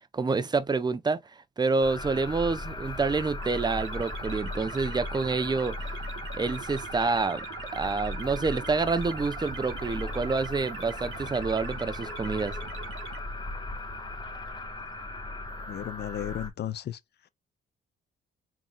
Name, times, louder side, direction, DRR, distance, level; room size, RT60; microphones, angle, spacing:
voice 1, 0.1-1.2 1.6-5.8 6.3-7.5 7.7-12.6, right 4 dB, 20° right, 0.6 m, -28 dB
sound 1, 1.8-16.5, left 2 dB, 20° left, 1.3 m, -37 dB
sound 2, 3.4-13.2, right 12 dB, 80° right, 0.7 m, -43 dB
voice 2, 15.6-17.0, left 10 dB, 60° left, 0.6 m, -34 dB
3.8 x 2.9 x 3.7 m
cardioid pair, 90°, 20 cm